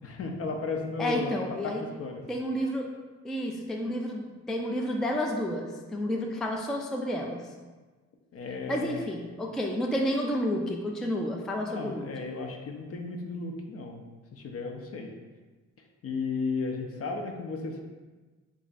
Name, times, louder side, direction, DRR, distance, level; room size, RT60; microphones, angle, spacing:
voice 1, 0.0-1.3 1.6-2.2 8.3-9.1 11.6-14.0 14.3-15.1 16.0-17.8, left 4 dB, 50° left, 3 dB, 0.6 m, -34 dB
voice 2, 1.0-1.8 2.3-2.9 3.2-7.4 8.7-12.1, equal, ahead, 1 dB, 0.3 m, -30 dB
3.2 x 2.4 x 3.9 m, 1.3 s
cardioid pair, 80°, 30 cm